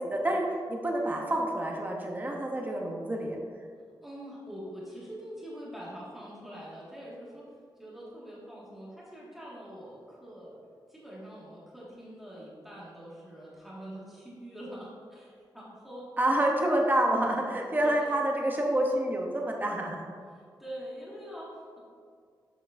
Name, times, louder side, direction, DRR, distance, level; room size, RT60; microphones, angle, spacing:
voice 1, 0.0-3.4 16.2-20.1, right 1 dB, 20° right, 0 dB, 0.7 m, -28 dB
voice 2, 4.0-7.5 7.8-10.6 10.9-16.1 17.8-18.1 20.3-21.8, equal, 5° right, -7 dB, 1.6 m, -44 dB
7.1 x 7.0 x 2.5 m, 2.1 s
wide cardioid pair, 135°, 8 cm